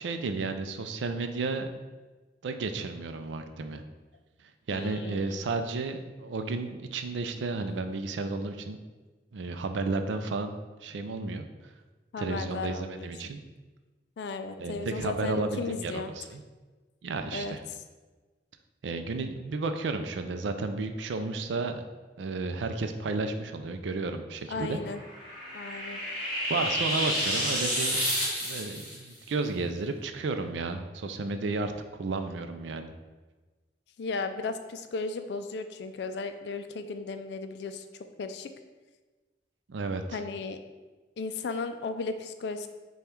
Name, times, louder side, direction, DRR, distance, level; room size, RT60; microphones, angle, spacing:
voice 1, 0.0-1.7 2.4-3.8 4.7-8.8 9.3-10.5 10.8-11.5 12.2-13.4 14.6-16.4 17.0-17.6 18.8-21.8 22.2-24.8 26.5-28.0 28.4-31.7 32.0-32.9 39.7-40.2, right 3 dB, 90° right, 8 dB, 0.4 m, -32 dB
voice 2, 4.7-5.4 12.1-13.1 14.2-16.1 17.3-17.6 24.5-25.0 25.5-26.0 34.0-37.8 38.2-38.5 40.1-40.6 41.2-42.7, left 4 dB, 70° left, 8 dB, 0.4 m, -35 dB
sound 1, 24.8-29.0, equal, 5° right, 1.4 m, -30 dB
5.3 x 2.3 x 4.4 m, 1.3 s
head